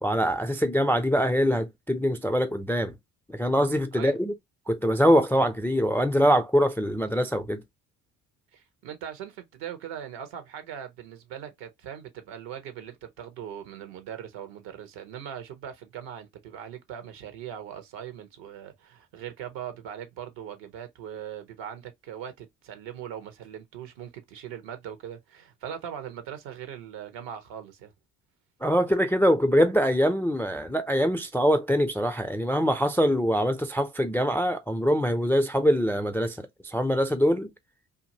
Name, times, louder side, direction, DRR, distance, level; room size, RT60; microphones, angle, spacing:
voice 1, 0.0-2.9 3.3-4.3 4.7-7.6 28.6-36.4 36.6-37.5, equal, 5° left, 0.3 m, -23 dB
voice 2, 8.5-27.9, right 9 dB, 70° right, 1.0 m, -40 dB
2.7 x 2.6 x 2.8 m
hypercardioid pair, 55°, 45 cm